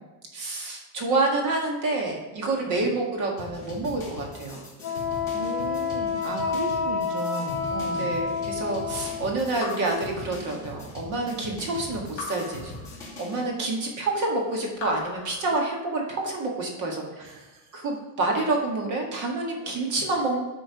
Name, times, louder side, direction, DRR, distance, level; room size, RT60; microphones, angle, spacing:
voice 1, 0.3-4.6 8.0-12.8 13.2-17.3 17.7-20.4, right 2 dB, 40° right, 0 dB, 1.7 m, -28 dB
sound 1, 3.4-13.5, left 2 dB, 5° left, 2.7 m, -42 dB
Wind instrument woodwind instrument, 4.8-9.3, left 5 dB, 25° left, 2.3 m, -29 dB
voice 2, 5.3-8.2 17.2-17.6, right 4 dB, 65° right, 3 dB, 1.5 m, -36 dB
Raindrop / Drip, 9.6-11.0 12.2-13.5 14.7-16.2, left 5 dB, 50° left, 2.6 m, -40 dB
10.5 x 3.9 x 4.7 m, 1.1 s
cardioid pair, 175°, 47 cm